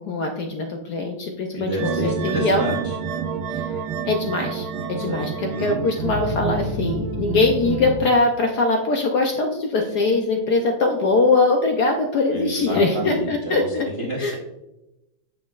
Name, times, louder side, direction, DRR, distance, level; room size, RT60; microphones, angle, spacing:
voice 1, 0.0-2.7 3.5-13.9 14.2-14.3, left 3 dB, 70° left, 3 dB, 1.0 m, -22 dB
voice 2, 1.5-2.9 5.0-5.2 5.5-5.8 12.3-14.4, right 1 dB, 55° right, -2 dB, 0.6 m, -29 dB
sound 1, 1.8-8.0, right 4 dB, 90° right, 1.5 m, -28 dB
7.3 x 6.3 x 2.4 m, 0.93 s
omnidirectional pair, 2.3 m